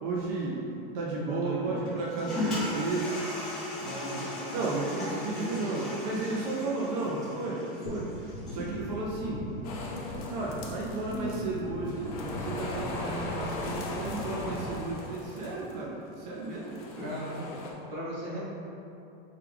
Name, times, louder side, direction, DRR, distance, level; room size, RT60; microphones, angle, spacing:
voice 1, 0.0-3.2 4.5-9.5 9.8-9.9 10.3-16.8, right 3 dB, 45° right, -4 dB, 0.5 m, -33 dB
voice 2, 1.1-1.9 3.8-4.7 5.0-6.1 7.0-7.3 11.1-11.4 17.0-18.4, right 1 dB, 85° right, -6 dB, 1.3 m, -38 dB
Toilet flush, 1.8-8.8, left 1 dB, ahead, 0.8 m, -36 dB
sound 1, 7.9-14.8, left 1 dB, 65° left, 0.9 m, -39 dB
sound 2, 9.6-11.6 11.9-15.7 16.4-17.7, left 2 dB, 40° left, 0.5 m, -39 dB
4.7 x 2.3 x 3.4 m, 2.8 s
supercardioid pair, 175°, 29 cm